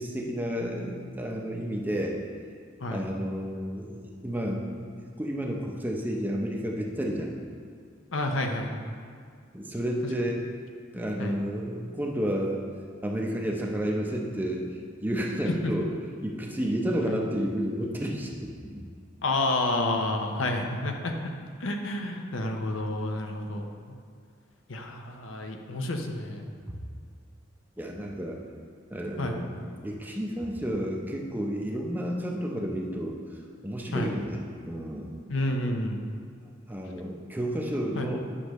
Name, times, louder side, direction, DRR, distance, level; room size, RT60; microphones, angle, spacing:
voice 1, 0.0-2.2 2.9-4.9 5.2-7.3 9.5-10.4 10.9-12.6 13.0-14.7 15.0-15.9 16.2-18.8 26.7-26.8 27.8-28.4 28.9-33.2 33.6-34.4 34.7-35.2 36.7-38.2, equal, 10° right, -1 dB, 0.6 m, -31 dB
voice 2, 8.1-8.7 11.2-11.4 15.6-15.7 17.1-17.2 19.2-21.2 21.6-24.0 24.7-26.5 29.2-29.4 33.9-34.1 35.3-36.0 37.9-38.1, left 2 dB, 75° left, 3 dB, 0.8 m, -30 dB
9.9 x 6.4 x 3.1 m, 2.1 s
head